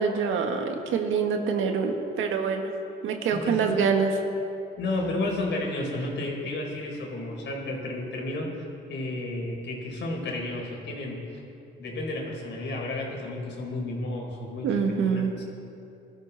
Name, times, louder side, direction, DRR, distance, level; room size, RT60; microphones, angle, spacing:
voice 1, 0.0-2.7 3.0-4.1 14.6-15.3, right 6 dB, 85° right, 4 dB, 1.7 m, -25 dB
voice 2, 3.3-3.8 4.8-8.6 8.9-11.3 11.8-15.4, left 2 dB, 65° left, 0 dB, 4.1 m, -32 dB
21.5 x 13.5 x 4.1 m, 2.7 s
cardioid pair, 90°, 20 cm